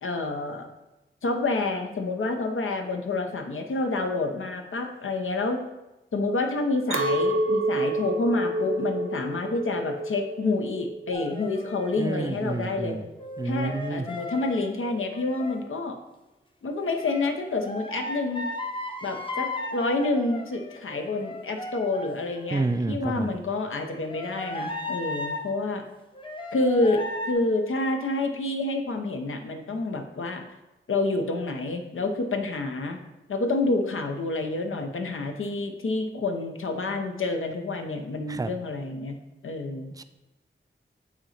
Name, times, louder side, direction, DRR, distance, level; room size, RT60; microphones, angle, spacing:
voice 1, 0.0-0.7 1.2-5.6 6.1-13.0 13.4-16.0 16.6-18.5 19.0-25.8 26.5-27.0 27.3-30.4 30.9-33.0 33.3-39.2 39.4-39.9, left 2 dB, 75° left, 4 dB, 0.8 m, -28 dB
Chink clink, 6.9-12.3, right 1 dB, 80° right, 0.6 m, -29 dB
sound 1, 11.1-12.0 13.2-15.6 16.7-22.6 23.8-25.5 26.1-27.3, left 2 dB, 25° left, 0.7 m, -36 dB
voice 2, 12.0-13.0 13.4-14.1 22.5-23.3 38.3-38.5 40.0-40.1, right 3 dB, 15° right, 10 dB, 0.4 m, -29 dB
8.5 x 2.9 x 4.2 m, 1.0 s
wide cardioid pair, 70°, 21 cm